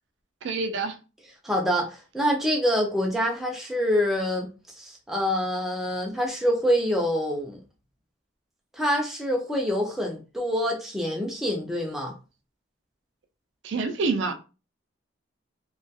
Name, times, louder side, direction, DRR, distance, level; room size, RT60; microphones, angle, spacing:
voice 1, 0.4-1.0 13.6-14.3, right 4 dB, 65° right, 0.4 m, -27 dB
voice 2, 1.4-4.5 4.8-7.6 8.7-12.1, equal, ahead, 0.4 m, -26 dB
2.3 x 2.2 x 2.6 m
head